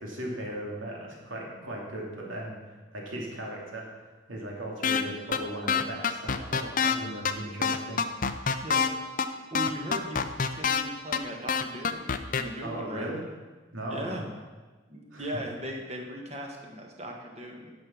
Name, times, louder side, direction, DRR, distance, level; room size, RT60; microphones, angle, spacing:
voice 1, 0.0-3.9 4.3-8.0 12.6-13.2 13.7-14.2 15.1-15.4, right 1 dB, 85° right, -2 dB, 2.9 m, -37 dB
sound 1, 4.8-5.0 5.3-5.4 5.7-6.9 7.2-7.3 7.6-8.9 9.2-9.3 9.5-10.8 11.1-11.2 11.5-12.4, left 6 dB, 40° left, 0.6 m, -25 dB
voice 2, 9.5-10.2 10.5-13.1 13.9-14.2 14.9-17.7, right 1 dB, 35° right, 1 dB, 1.6 m, -38 dB
11.0 x 7.1 x 6.3 m, 1.3 s
head